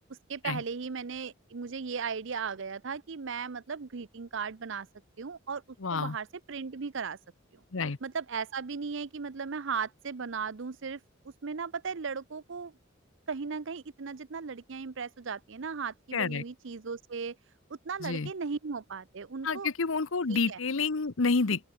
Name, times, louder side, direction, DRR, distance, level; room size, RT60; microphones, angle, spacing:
voice 1, 0.1-4.9 5.2-5.6 5.9-7.2 8.0-11.0 11.4-12.7 13.3-17.3 17.9-19.7 20.3-20.6, right 5 dB, 65° right, 0.7 m, -36 dB
voice 2, 5.8-6.2 7.7-8.0 16.1-16.4 18.0-18.3 19.4-21.7, left 4 dB, 70° left, 0.9 m, -29 dB
open air
head